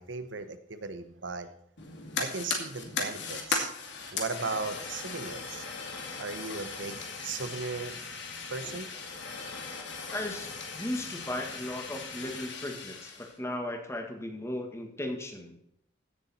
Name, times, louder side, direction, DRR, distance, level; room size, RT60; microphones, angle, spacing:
voice 1, 0.0-1.5 2.2-3.7 4.1-5.6 6.2-7.9 8.5-8.9, right 4 dB, 85° right, 10 dB, 1.1 m, -36 dB
Fire, 1.8-13.3, left 4 dB, 65° left, 2.4 m, -38 dB
voice 2, 10.1-10.5 10.7-15.6, left 1 dB, 15° left, 3 dB, 1.9 m, -36 dB
15.5 x 7.1 x 4.3 m, 0.74 s
head